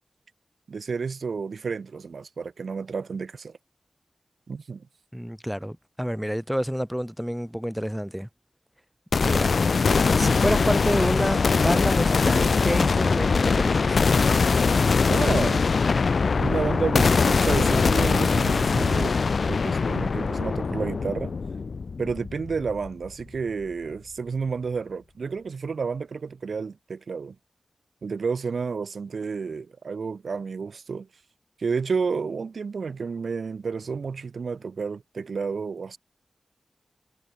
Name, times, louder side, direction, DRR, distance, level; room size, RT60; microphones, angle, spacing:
voice 1, 0.7-3.6 4.5-4.8 15.1-15.6 16.4-19.2 19.5-21.3 22.0-27.3 28.0-31.1 31.6-36.0, right 5 dB, 85° right, 2.9 m, -30 dB
voice 2, 5.1-8.3 9.2-9.5 10.2-14.0, equal, ahead, 0.9 m, -28 dB
sound 1, 9.1-23.1, left 4 dB, 75° left, 0.3 m, -22 dB
wide cardioid pair, 80°, 0 cm